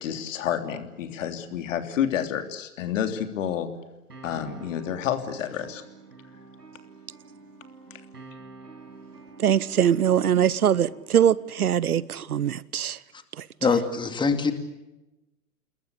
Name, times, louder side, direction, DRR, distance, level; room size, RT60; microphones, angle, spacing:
voice 1, 0.0-3.7 4.2-5.8 7.9-8.0, left 9 dB, 55° left, 3.3 m, -29 dB
sound 1, 4.1-12.1, right 4 dB, 85° right, 5.5 m, -48 dB
voice 2, 9.4-13.0 13.4-13.5, right 9 dB, 70° right, 1.0 m, -22 dB
voice 3, 13.6-14.5, left 5 dB, 10° left, 2.4 m, -24 dB
28.5 x 21.5 x 8.2 m
figure-of-eight pair, 115°, 47 cm